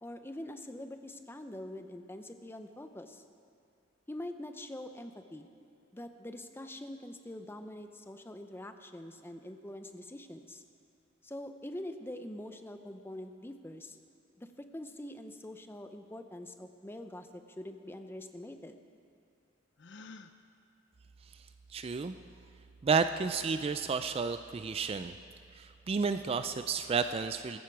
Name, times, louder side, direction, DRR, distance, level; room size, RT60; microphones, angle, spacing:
voice 1, 0.0-3.2 4.1-5.5 5.9-10.6 11.2-14.0 14.4-18.8, left 1 dB, 10° left, 7 dB, 0.6 m, -44 dB
Gasp, 19.8-20.3, left 3 dB, 60° left, 0.6 m, -49 dB
voice 2, 21.7-22.2 22.8-25.2 25.5-27.6, right 5 dB, 30° right, 10 dB, 0.3 m, -31 dB
16.5 x 14.5 x 4.6 m, 2.4 s
head